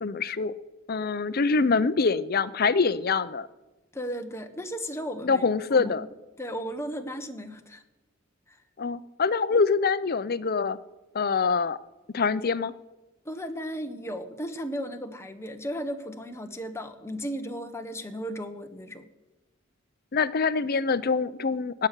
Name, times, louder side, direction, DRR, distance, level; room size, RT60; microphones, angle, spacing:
voice 1, 0.0-0.5 0.9-3.5 5.2-6.0 8.8-10.8 11.1-11.8 12.1-12.7 20.1-21.9, left 4 dB, 45° left, 14 dB, 0.6 m, -25 dB
voice 2, 3.9-5.4 5.7-7.8 8.5-8.6 13.2-19.1, equal, 15° left, 6 dB, 1.1 m, -35 dB
17.0 x 6.7 x 9.9 m, 1.1 s
head